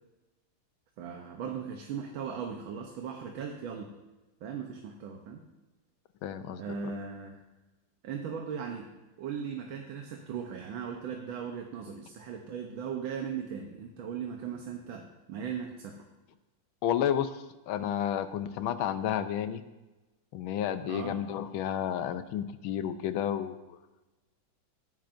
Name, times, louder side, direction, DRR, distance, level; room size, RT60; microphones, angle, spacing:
voice 1, 1.0-3.9 4.4-5.4 6.6-7.4 8.0-8.9 9.2-16.0 20.9-21.2, right 7 dB, 75° right, 2 dB, 1.6 m, -38 dB
voice 2, 6.2-6.9 16.8-19.6 20.3-23.6, left 9 dB, 80° left, 11 dB, 1.5 m, -31 dB
16.0 x 9.4 x 2.6 m, 1.1 s
omnidirectional pair, 2.3 m